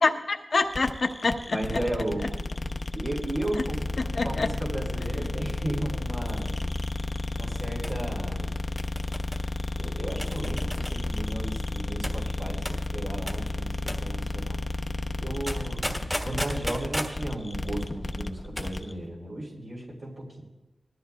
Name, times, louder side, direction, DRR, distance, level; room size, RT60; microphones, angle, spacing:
voice 1, 0.0-1.6 4.0-4.5, left 3 dB, 65° left, 6 dB, 1.0 m, -26 dB
sound 1, 0.7-18.9, left 2 dB, 35° left, 0.8 m, -32 dB
sound 2, 0.8-4.2 5.0-5.5 5.7-5.8 6.3-6.7 7.8-8.0 8.8-9.4 10.2-11.0 12.0-12.2 12.7-12.9 13.3-13.5 13.9-14.1 15.5-17.2 18.4-18.8 19.0-19.1, equal, 10° right, 1.5 m, -36 dB
voice 2, 1.5-2.3 2.9-3.9 4.2-6.5 7.3-8.6 9.8-14.6 15.2-20.4, right 1 dB, 55° right, -4 dB, 3.5 m, -35 dB
20.0 x 13.5 x 2.4 m, 0.99 s
wide cardioid pair, 65°, 0 cm